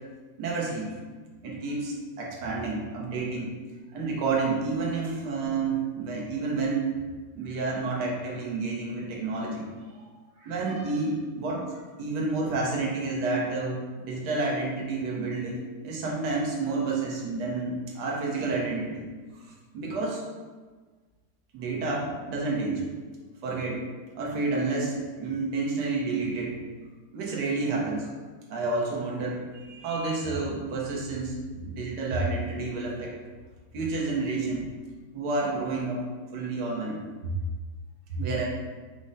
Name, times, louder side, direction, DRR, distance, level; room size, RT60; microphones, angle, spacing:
voice 1, 0.4-0.9 1.4-3.5 3.9-7.0 7.3-9.6 9.9-10.0 10.4-19.0 19.7-20.2 21.5-22.8 23.4-23.8 24.1-26.6 27.1-28.1 28.5-33.1 33.7-34.7 35.1-36.0 36.3-37.0 38.1-38.5, right 3 dB, 75° right, -2 dB, 1.4 m, -30 dB
5.0 x 2.1 x 3.9 m, 1.4 s
omnidirectional pair, 1.8 m